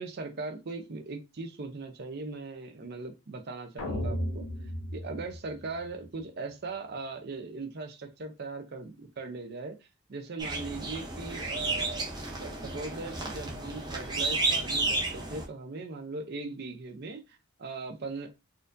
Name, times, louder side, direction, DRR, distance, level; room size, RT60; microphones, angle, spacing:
voice 1, 0.0-4.4 4.9-9.8 10.1-18.3, right 3 dB, 45° right, 0.5 m, -39 dB
sound 1, 3.8-6.1, equal, 90° left, 1.0 m, -35 dB
sound 2, 10.4-15.4, right 3 dB, 20° right, 0.8 m, -32 dB
4.3 x 2.5 x 2.5 m
head